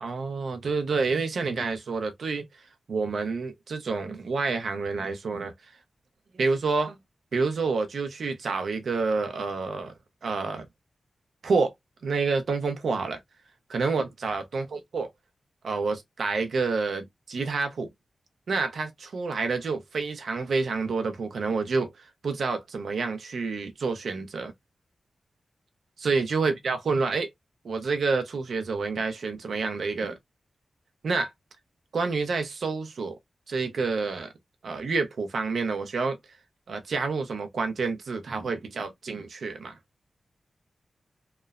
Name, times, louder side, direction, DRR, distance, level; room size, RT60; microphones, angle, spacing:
voice 1, 0.0-2.5 2.9-5.5 6.3-7.0 7.3-9.9 10.2-10.7 11.4-11.7 12.0-13.2 13.7-15.1 15.6-17.9 18.5-21.9 22.2-24.5 26.0-27.3 27.6-30.2 31.0-31.3 31.9-33.2 33.5-34.3 34.6-36.2 36.7-39.8, right 4 dB, 75° right, 0.5 m, -28 dB
2.9 x 2.0 x 2.4 m
wide cardioid pair, 145°, 0 cm